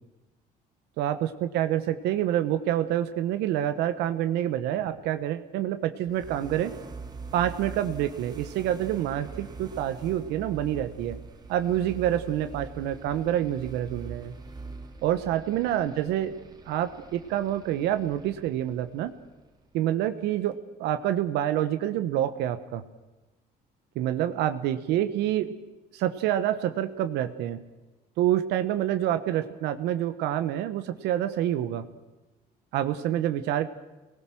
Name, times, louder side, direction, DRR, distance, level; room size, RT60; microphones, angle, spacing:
voice 1, 1.0-6.8 7.3-11.2 11.5-14.3 15.0-16.3 16.7-19.1 19.7-20.5 20.8-22.8 23.9-25.5 25.9-27.6 28.2-31.9 32.7-33.7, right 12 dB, 90° right, 9 dB, 1.3 m, -27 dB
sound 1, 6.1-19.9, right 4 dB, 25° right, 3.0 m, -44 dB
25.5 x 19.5 x 6.3 m, 1.1 s
cardioid pair, 110°, 17 cm